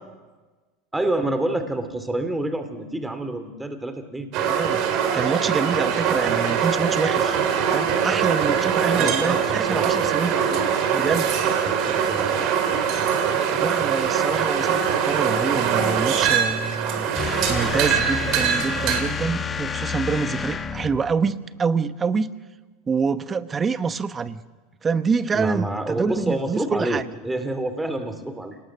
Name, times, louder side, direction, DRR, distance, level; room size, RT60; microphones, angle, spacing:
voice 1, 0.9-4.3 8.9-9.9 11.7-12.5 25.3-28.6, right 1 dB, 10° right, 8 dB, 2.6 m, -28 dB
sound 1, 4.3-19.0, right 7 dB, 55° right, 3.3 m, -22 dB
voice 2, 4.5-4.8 5.1-7.4 7.7-10.7 10.9-11.3 13.6-17.1 17.5-22.3 22.9-24.4 24.8-27.0, right 5 dB, 25° right, 13 dB, 1.1 m, -26 dB
sound 2, 17.2-21.1, left 6 dB, 25° left, 1.8 m, -29 dB
28.5 x 19.0 x 6.3 m, 1.3 s
hypercardioid pair, 90°, 0 cm